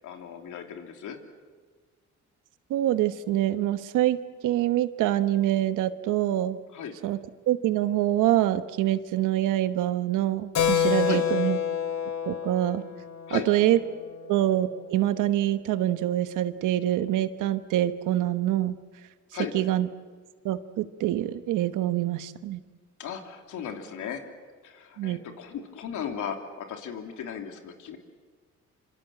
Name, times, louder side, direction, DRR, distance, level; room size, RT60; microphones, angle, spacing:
voice 1, 0.0-1.2 6.7-6.9 11.0-11.2 13.3-13.5 19.3-19.5 23.0-24.2 24.6-28.0, left 8 dB, 80° left, 4 dB, 3.2 m, -36 dB
voice 2, 2.7-6.6 7.0-7.2 7.5-11.6 12.3-12.8 13.3-13.8 14.3-18.8 19.5-19.9 20.4-22.6 25.0-25.2, right 13 dB, 90° right, 12 dB, 1.2 m, -25 dB
Keyboard (musical), 10.5-14.6, left 9 dB, 65° left, 2.7 m, -28 dB
26.5 x 25.5 x 7.6 m, 1.5 s
cardioid pair, 90°, 30 cm